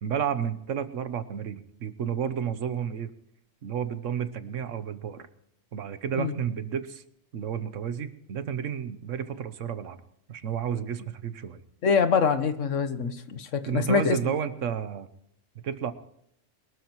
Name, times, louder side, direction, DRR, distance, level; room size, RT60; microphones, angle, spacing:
voice 1, 0.0-3.1 3.6-5.3 5.7-7.0 7.3-10.0 10.3-11.6 13.7-15.1 15.6-15.9, right 8 dB, 80° right, 12 dB, 1.3 m, -31 dB
voice 2, 11.8-14.3, left 5 dB, 80° left, 10 dB, 1.4 m, -25 dB
23.5 x 13.0 x 3.1 m, 0.72 s
omnidirectional pair, 1.3 m